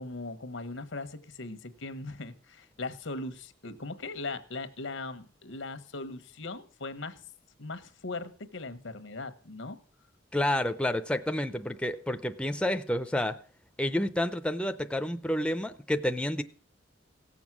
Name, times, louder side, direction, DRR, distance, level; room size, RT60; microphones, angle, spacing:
voice 1, 0.0-7.2 7.6-9.8, left 3 dB, 85° left, 1.2 m, -39 dB
voice 2, 10.3-13.4 13.8-16.4, left 1 dB, 5° left, 0.5 m, -29 dB
17.0 x 7.2 x 6.1 m
head